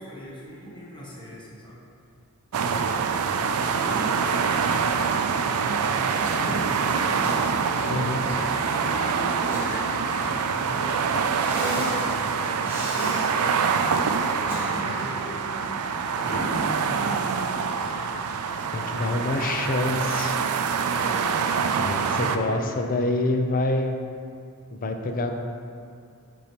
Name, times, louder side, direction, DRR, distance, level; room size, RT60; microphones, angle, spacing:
voice 1, 0.0-1.8 3.3-7.5 8.3-13.2 14.5-18.0 20.8-23.2, equal, 20° left, -6 dB, 1.3 m, -41 dB
sound 1, 2.5-22.4, right 6 dB, 85° right, 0.4 m, -25 dB
Alarm, 2.8-3.2 3.8-4.3 4.6-5.2 5.8-6.2 6.8-7.3 7.8-8.3 8.8-9.3 9.8-10.2 10.8-11.2 11.8-12.2 12.8-13.3 13.8-14.3 14.8-15.2 15.8-16.2 16.8-17.3 17.8-18.2 18.8-19.3 19.8-20.3 20.8-21.3, left 2 dB, 60° left, 1.3 m, -45 dB
Cough, 6.2-6.7 7.2-7.9 8.3-8.5 9.2-10.4 11.4-12.0 12.6-13.3 14.2-15.1 16.2-16.7, equal, 10° right, 1.6 m, -33 dB
voice 2, 7.9-8.2 18.7-20.8 21.8-24.0 24.7-25.4, left 2 dB, 40° left, 5 dB, 0.5 m, -26 dB
8.3 x 5.4 x 3.0 m, 2.4 s
head